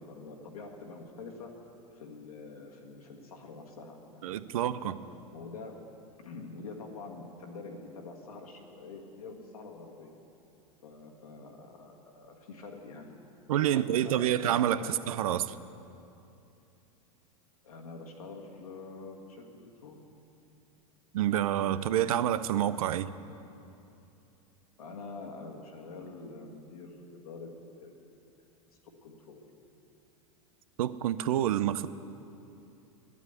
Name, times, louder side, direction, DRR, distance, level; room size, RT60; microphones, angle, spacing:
voice 1, 0.0-4.4 4.7-5.0 5.3-5.8 6.2-10.1 10.8-13.2 13.6-15.0 17.6-20.0 24.8-27.5 27.8-28.0 29.0-29.4, left 3 dB, 85° left, 1 dB, 1.8 m, -46 dB
voice 2, 4.2-4.9 13.5-15.6 21.1-23.1 30.8-31.9, right 11 dB, 75° right, 15 dB, 0.5 m, -28 dB
10.5 x 9.4 x 8.1 m, 2.7 s
hypercardioid pair, 100°, 18 cm